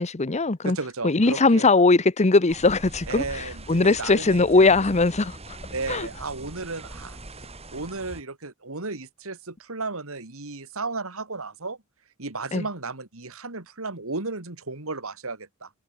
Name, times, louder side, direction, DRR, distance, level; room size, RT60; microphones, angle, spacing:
voice 1, 0.0-0.8 1.0-5.4 5.9-6.1 12.5-12.6, left 3 dB, 30° left, 0.9 m, -20 dB
voice 2, 0.6-1.7 3.1-4.6 5.7-7.2 7.7-11.8 12.2-15.7, right 3 dB, 70° right, 2.7 m, -34 dB
sound 1, 2.5-8.2, right 1 dB, 30° right, 4.1 m, -41 dB
head